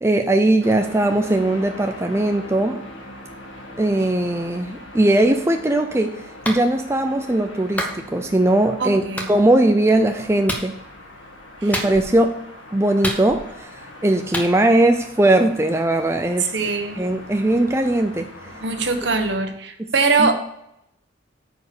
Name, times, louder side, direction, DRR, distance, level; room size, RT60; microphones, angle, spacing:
voice 1, 0.0-2.8 3.8-10.8 11.6-12.4 12.7-16.5 17.0-18.3 20.2-20.3, right 1 dB, 15° right, 5 dB, 0.5 m, -19 dB
sound 1, 0.6-19.4, left 1 dB, 85° left, 2.0 m, -41 dB
Clapping, 6.4-6.6 7.8-8.0 9.2-9.3 10.5-10.7 11.7-12.2 13.0-13.6 14.3-14.5, equal, 10° left, 1.2 m, -27 dB
voice 2, 8.8-9.3 16.4-17.0 18.6-20.3, right 4 dB, 65° right, 6 dB, 1.2 m, -22 dB
9.4 x 5.0 x 6.6 m, 0.78 s
head